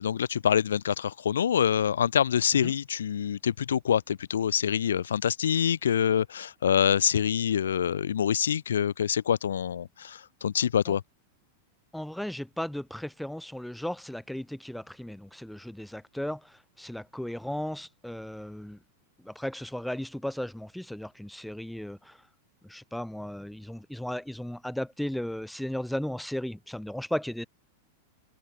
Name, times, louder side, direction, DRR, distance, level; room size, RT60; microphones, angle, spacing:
voice 1, 0.0-11.0, left 8 dB, 65° left, 0.4 m, -26 dB
voice 2, 11.9-18.8 19.2-22.2 22.6-27.5, left 1 dB, ahead, 1.1 m, -35 dB
figure-of-eight pair, 95°, 0 cm